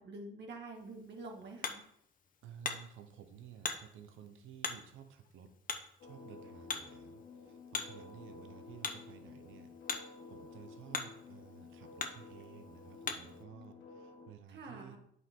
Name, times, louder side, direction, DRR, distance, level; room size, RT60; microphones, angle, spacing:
voice 1, 0.0-1.8 14.5-15.0, right 2 dB, 60° right, 2 dB, 1.9 m, -47 dB
Hammer, 0.8-13.4, left 5 dB, 45° left, 1.0 m, -44 dB
voice 2, 2.4-5.5 6.0-15.0, right 8 dB, 90° right, 8 dB, 0.9 m, -54 dB
sound 1, 6.0-14.3, left 4 dB, 70° left, 1.6 m, -53 dB
8.7 x 5.6 x 3.7 m, 0.72 s
cardioid pair, 90°, 20 cm